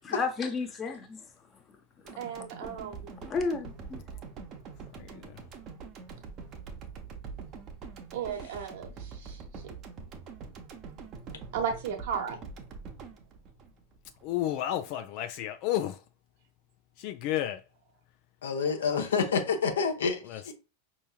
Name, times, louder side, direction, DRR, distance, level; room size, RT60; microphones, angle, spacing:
voice 1, 0.0-1.3 2.1-2.2 2.6-2.7 3.2-4.0, left 4 dB, 25° left, 0.8 m, -32 dB
sound 1, 2.1-14.3 14.7-14.8, right 5 dB, 35° right, 0.7 m, -44 dB
voice 2, 2.2-3.1 8.1-9.4 11.5-12.4, right 7 dB, 55° right, 1.1 m, -35 dB
voice 3, 5.0-5.4 14.2-16.0 17.0-17.6 20.2-20.5, left 12 dB, 45° left, 0.3 m, -32 dB
voice 4, 18.4-20.5, left 5 dB, 65° left, 0.9 m, -28 dB
5.3 x 3.0 x 2.3 m
figure-of-eight pair, 90°, 0 cm